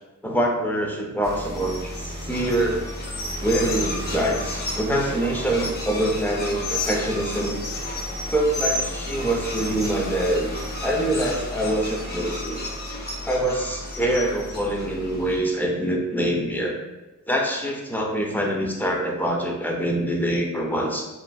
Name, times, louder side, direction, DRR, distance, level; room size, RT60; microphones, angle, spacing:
voice 1, 0.2-2.8 3.4-7.6 8.3-12.6 13.2-16.8 17.3-21.0, right 1 dB, 5° left, 0 dB, 0.3 m, -25 dB
sound 1, 1.2-15.4, left 1 dB, 30° left, 0.8 m, -31 dB
3.0 x 2.5 x 2.2 m, 1.0 s
wide cardioid pair, 120°, 31 cm